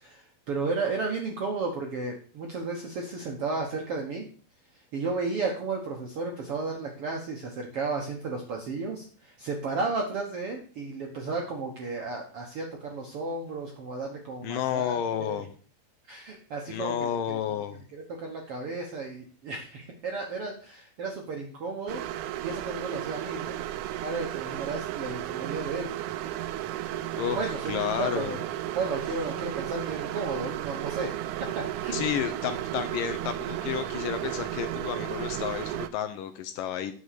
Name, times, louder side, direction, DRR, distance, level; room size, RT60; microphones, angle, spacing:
voice 1, 0.0-4.2 4.9-15.4 16.1-17.4 17.9-22.0 22.4-23.6 24.0-25.9 27.3-28.4 28.7-32.0, right 3 dB, 65° right, 1 dB, 1.4 m, -33 dB
voice 2, 14.4-15.5 16.7-17.8 27.1-27.4 27.7-28.4 31.9-36.9, left 10 dB, 75° left, 9 dB, 2.1 m, -31 dB
sound 1, 21.9-35.9, right 13 dB, 90° right, 1.7 m, -34 dB
9.5 x 6.2 x 6.6 m, 0.43 s
omnidirectional pair, 4.3 m